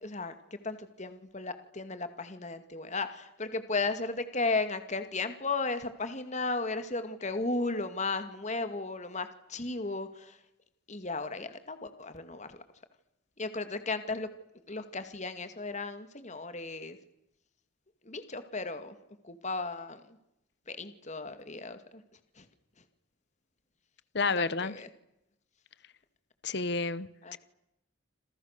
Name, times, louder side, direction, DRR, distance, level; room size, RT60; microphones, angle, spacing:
voice 1, 0.0-10.4 10.9-12.6 13.4-14.3 14.7-17.0 18.0-18.9 19.2-20.0 20.7-22.0 22.4-22.5 24.3-24.9 27.2-27.4, left 3 dB, 40° left, 9 dB, 2.3 m, -35 dB
voice 2, 24.1-24.8 26.4-27.4, left 4 dB, 60° left, 16 dB, 1.1 m, -30 dB
29.0 x 27.5 x 6.8 m, 0.86 s
head